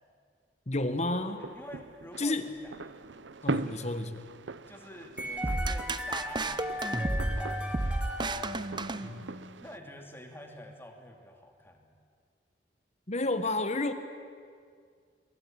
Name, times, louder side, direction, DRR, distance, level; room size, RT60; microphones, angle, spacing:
voice 1, 0.7-1.4 2.2-2.5 3.4-4.2 9.0-9.3 13.1-13.9, left 2 dB, 40° left, 9 dB, 1.6 m, -31 dB
sound 1, 1.0-9.8, right 3 dB, 85° right, 0.7 m, -41 dB
voice 2, 1.5-2.7 3.4-3.9 4.5-8.0 9.6-11.9, left 1 dB, 15° left, 3 dB, 2.9 m, -48 dB
sound 2, 5.2-9.3, left 1 dB, 5° right, 2.1 m, -38 dB
sound 3, 5.4-9.6, right 2 dB, 25° right, 0.8 m, -32 dB
26.5 x 22.5 x 8.9 m, 2.1 s
head